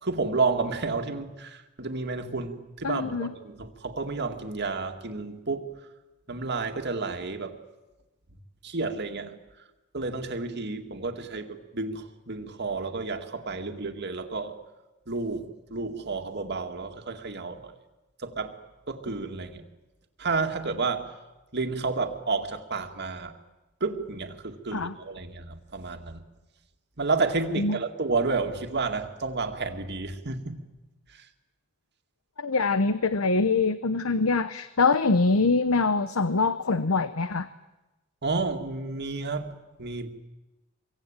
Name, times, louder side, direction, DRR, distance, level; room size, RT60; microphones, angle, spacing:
voice 1, 0.0-5.7 6.3-7.6 8.6-9.4 9.9-14.6 15.1-17.8 18.2-18.6 18.9-19.6 20.2-21.1 21.5-23.3 23.8-26.2 27.0-30.6 31.1-31.3 38.2-39.5 39.8-40.1, right 3 dB, 55° right, 5 dB, 2.2 m, -31 dB
voice 2, 2.8-3.3 24.7-24.9 27.6-27.8 32.4-37.5, left 3 dB, 90° left, 13 dB, 1.0 m, -24 dB
26.5 x 23.5 x 9.0 m, 1.1 s
head